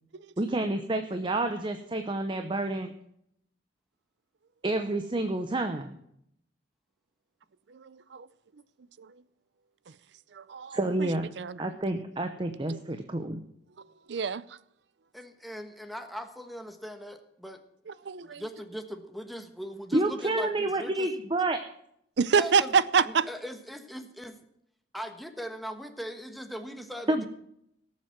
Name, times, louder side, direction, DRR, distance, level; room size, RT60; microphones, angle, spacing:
voice 1, 0.4-2.9 4.6-6.0 10.7-11.3 11.6-13.4 19.9-21.6 27.1-27.3, right 2 dB, 30° right, 0.8 m, -29 dB
voice 2, 7.8-8.3 10.4-11.1 11.4-11.6 14.1-14.4 18.1-18.4 22.2-23.3, right 6 dB, 80° right, 0.5 m, -26 dB
voice 3, 15.1-17.6 18.2-21.1 22.3-22.7 23.0-24.4 24.9-27.3, equal, ahead, 1.2 m, -40 dB
18.0 x 7.4 x 5.9 m
head